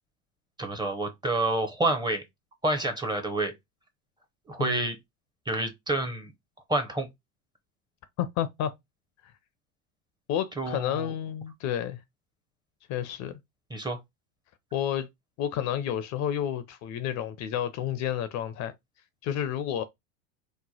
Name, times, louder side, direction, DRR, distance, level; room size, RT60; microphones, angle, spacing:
voice 1, 0.6-2.2 2.6-3.5 4.5-5.0 5.5-6.3 6.7-7.1 10.6-11.1 13.7-14.0, right 2 dB, 10° right, 0.6 m, -28 dB
voice 2, 8.2-8.7 10.3-12.0 12.9-13.4 14.7-15.1 15.4-18.7 19.2-19.8, left 10 dB, 45° left, 0.5 m, -30 dB
3.0 x 2.1 x 3.9 m
hypercardioid pair, 105°, 40 cm